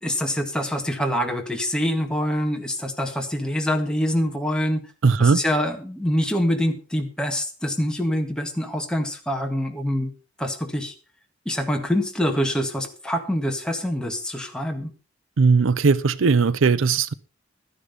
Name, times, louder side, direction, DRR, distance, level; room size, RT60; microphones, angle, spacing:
voice 1, 0.0-4.8 5.2-10.1 10.4-10.9 11.5-14.9, equal, 5° left, 1.9 m, -25 dB
voice 2, 5.0-5.4 15.4-17.1, right 4 dB, 70° right, 0.5 m, -18 dB
13.0 x 10.0 x 5.2 m
head